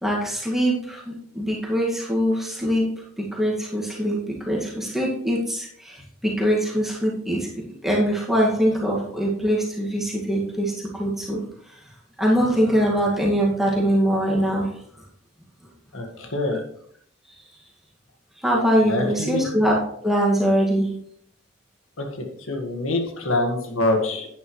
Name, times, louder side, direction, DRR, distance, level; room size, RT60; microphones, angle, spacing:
voice 1, 0.0-10.7 11.0-11.4 12.2-14.7 16.5-16.6 18.4-20.9, equal, ahead, -4 dB, 2.0 m, -23 dB
voice 2, 15.9-16.6 18.8-19.4 22.0-24.3, left 2 dB, 85° left, 3 dB, 1.8 m, -25 dB
11.0 x 9.5 x 3.2 m, 0.67 s
head